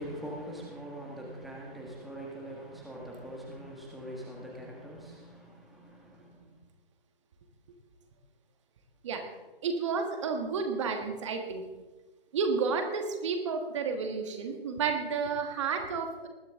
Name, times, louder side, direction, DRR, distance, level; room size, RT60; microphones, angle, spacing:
voice 1, 0.0-6.4, equal, ahead, -3 dB, 1.7 m, -43 dB
voice 2, 9.6-11.6 12.3-16.3, right 5 dB, 30° right, 5 dB, 1.6 m, -31 dB
20.0 x 11.5 x 3.7 m, 1.1 s
figure-of-eight pair, 150°, 30 cm